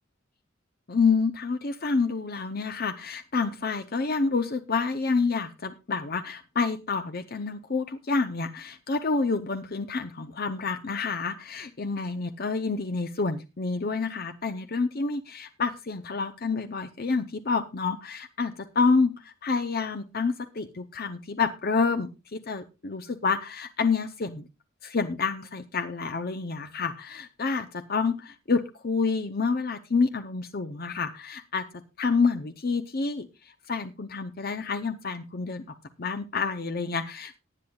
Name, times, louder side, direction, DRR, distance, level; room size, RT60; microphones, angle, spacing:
voice 1, 0.9-24.5 24.8-37.4, left 4 dB, 45° left, 8 dB, 0.7 m, -28 dB
18.5 x 10.5 x 2.3 m, 0.27 s
head